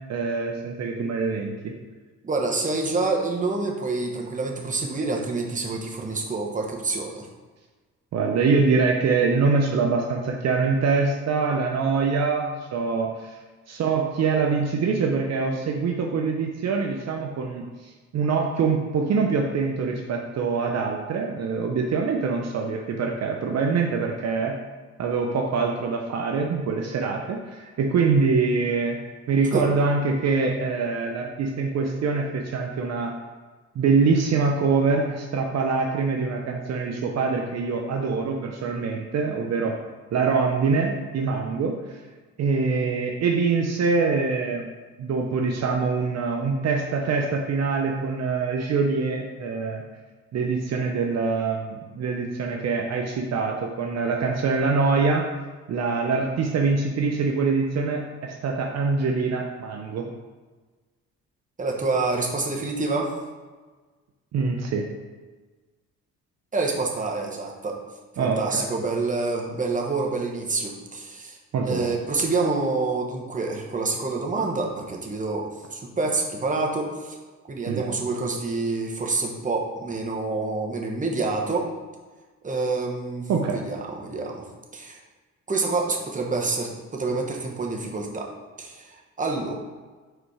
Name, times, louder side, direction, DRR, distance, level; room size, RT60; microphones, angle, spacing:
voice 1, 0.1-1.7 8.1-13.3 13.7-24.6 25.0-29.0 29.3-33.1 33.8-39.8 40.1-41.8 42.4-44.7 45.0-49.8 50.3-55.2 55.7-60.1 64.3-64.9 68.2-68.7 71.5-71.9 77.7-77.9 83.3-83.6, right 4 dB, 60° right, 1 dB, 0.7 m, -24 dB
voice 2, 2.2-7.3 29.5-29.7 61.6-63.1 66.5-67.8 68.2-71.4 71.6-77.2 77.5-81.7 82.4-84.4 84.7-85.0 85.5-88.3 88.6-88.9 89.2-89.6, right 3 dB, 25° right, 0 dB, 1.1 m, -27 dB
5.0 x 4.3 x 4.8 m, 1.3 s
cardioid pair, 90°, 30 cm